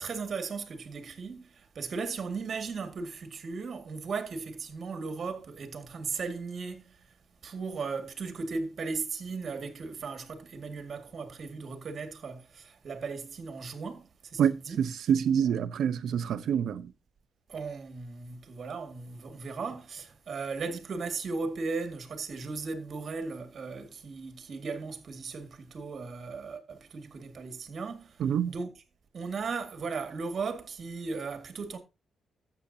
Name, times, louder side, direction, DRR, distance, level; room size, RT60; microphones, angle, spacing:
voice 1, 0.0-7.1 7.4-14.8 15.4-15.5 17.5-28.8 29.1-31.8, right 4 dB, 45° right, 1.9 m, -37 dB
voice 2, 14.4-16.9 28.2-28.5, right 8 dB, 70° right, 0.7 m, -27 dB
12.5 x 8.1 x 2.8 m
cardioid pair, 110°, 0 cm